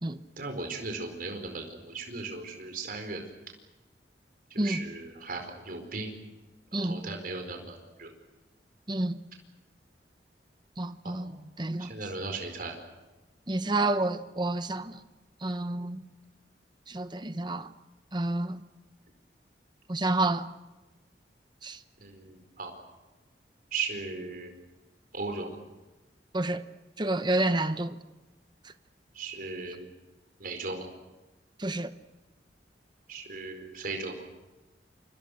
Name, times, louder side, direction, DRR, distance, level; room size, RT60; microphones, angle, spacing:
voice 1, 0.4-3.2 4.5-6.2 6.7-8.1 11.0-11.2 11.8-12.8 22.0-22.7 23.7-24.5 25.1-25.6 29.1-29.9 30.4-30.9 33.1-34.2, right 3 dB, 55° right, 4.6 m, -37 dB
voice 2, 6.7-7.0 8.9-9.2 10.8-11.9 13.5-15.0 15.4-16.1 16.9-17.7 18.1-18.6 19.9-20.5 21.6-21.8 26.3-26.6 27.0-28.0 31.6-31.9, right 2 dB, 25° right, 0.9 m, -29 dB
29.0 x 25.5 x 6.5 m
head